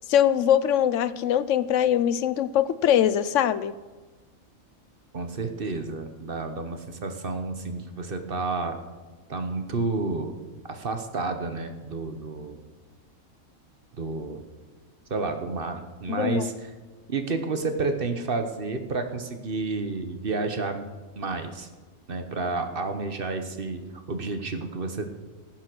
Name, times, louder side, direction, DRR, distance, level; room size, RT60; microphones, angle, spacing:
voice 1, 0.1-3.8 16.1-16.5, left 10 dB, 70° left, 15 dB, 0.9 m, -22 dB
voice 2, 5.1-8.8 9.3-10.4 10.6-12.6 14.0-14.4 15.1-16.7 17.1-20.9 21.2-21.7 22.1-23.8 24.1-25.1, right 3 dB, 45° right, 7 dB, 1.2 m, -30 dB
15.0 x 9.3 x 6.2 m, 1.3 s
omnidirectional pair, 1.4 m